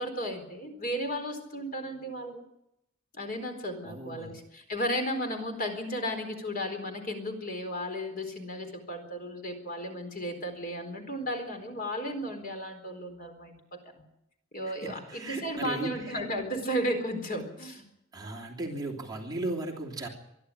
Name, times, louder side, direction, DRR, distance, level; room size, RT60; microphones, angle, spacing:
voice 1, 0.0-2.4 3.1-13.5 14.5-17.8, equal, 45° left, 5 dB, 4.2 m, -34 dB
voice 2, 3.8-4.3 14.6-16.2 18.1-20.1, right 2 dB, 20° right, -2 dB, 3.1 m, -36 dB
25.0 x 11.5 x 9.8 m, 0.81 s
head